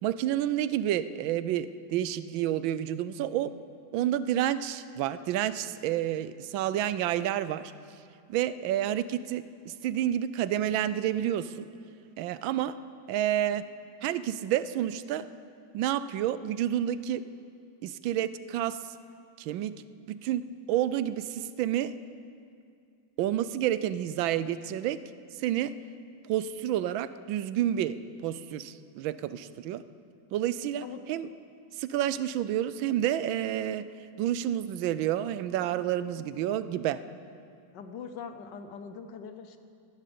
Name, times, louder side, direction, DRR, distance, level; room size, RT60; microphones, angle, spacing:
voice 1, 0.0-3.5 3.9-7.7 8.3-11.7 12.2-12.8 13.1-13.7 14.0-15.3 15.7-17.2 17.8-18.8 19.4-19.8 20.1-20.4 20.7-21.9 23.2-25.0 25.4-25.7 26.3-28.0 28.2-29.8 30.3-31.3 31.8-33.9 34.2-37.0, right 11 dB, 85° right, 14 dB, 1.4 m, -29 dB
voice 2, 37.7-39.6, left 6 dB, 70° left, 9 dB, 1.4 m, -42 dB
16.5 x 11.5 x 6.9 m, 2.4 s
omnidirectional pair, 2.1 m